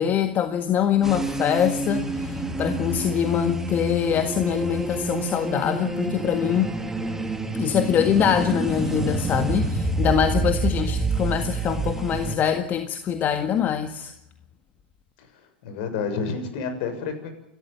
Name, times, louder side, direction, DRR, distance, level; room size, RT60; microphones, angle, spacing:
voice 1, 0.0-6.7 7.5-14.1, left 9 dB, 35° left, 8 dB, 1.7 m, -24 dB
sound 1, 1.0-12.4, right 2 dB, 5° right, 2.6 m, -28 dB
voice 2, 15.6-17.3, left 5 dB, 55° left, 7 dB, 7.0 m, -29 dB
29.5 x 13.5 x 9.2 m, 0.81 s
hypercardioid pair, 105°, 6 cm